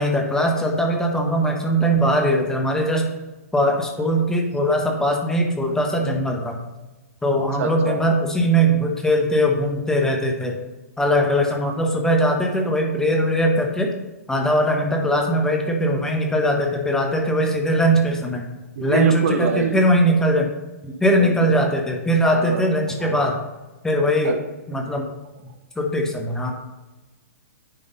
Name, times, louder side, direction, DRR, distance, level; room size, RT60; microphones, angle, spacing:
voice 1, 0.0-3.1 3.5-6.6 7.2-10.6 11.0-13.9 14.3-18.5 18.8-20.5 20.8-23.4 23.8-24.3 24.7-25.0 25.8-26.5, equal, 5° left, 2 dB, 1.1 m, -20 dB
voice 2, 7.6-8.0 18.8-19.8 21.2-21.4 22.3-22.6 23.0-23.2 24.2-24.4, right 6 dB, 60° right, 8 dB, 0.7 m, -25 dB
9.7 x 3.7 x 4.0 m, 1.1 s
hypercardioid pair, 120°, 8 cm